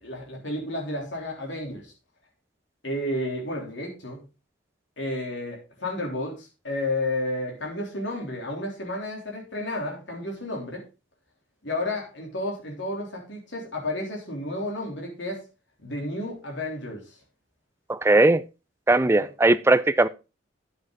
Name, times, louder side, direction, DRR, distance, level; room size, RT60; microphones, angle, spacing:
voice 1, 0.0-1.9 2.8-4.2 5.0-10.8 11.6-15.4 15.8-17.0 19.0-19.1, left 1 dB, 70° left, 3.5 m, -31 dB
voice 2, 17.9-18.4 18.9-20.1, right 2 dB, 15° right, 0.4 m, -19 dB
9.7 x 7.8 x 4.0 m
head